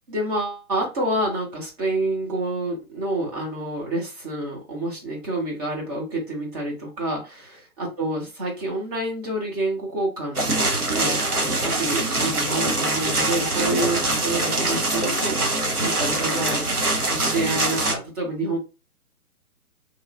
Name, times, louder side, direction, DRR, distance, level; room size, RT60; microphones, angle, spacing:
voice 1, 0.1-16.6 17.1-18.6, right 1 dB, 25° right, -2 dB, 1.0 m, -28 dB
sound 1, 10.3-17.9, right 2 dB, 85° right, 1.0 m, -23 dB
3.0 x 2.6 x 2.4 m, 0.28 s
figure-of-eight pair, 130°, 44 cm